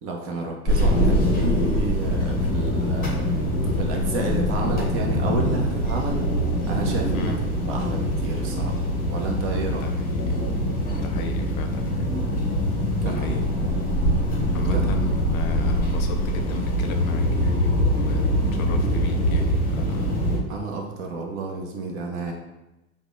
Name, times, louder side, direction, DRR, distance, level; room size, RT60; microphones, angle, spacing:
voice 1, 0.0-3.1 3.7-6.2 6.7-7.3 7.7-9.8 13.0-13.3 14.7-14.8 20.5-22.3, right 3 dB, 30° right, 1 dB, 0.5 m, -30 dB
sound 1, 0.7-20.4, equal, 20° left, 0.8 m, -23 dB
voice 2, 7.1-7.4 9.7-10.4 10.9-12.2 13.0-13.5 14.5-20.2, left 5 dB, 65° left, 6 dB, 0.6 m, -34 dB
5.1 x 2.1 x 2.5 m, 0.97 s
hypercardioid pair, 115°, 45 cm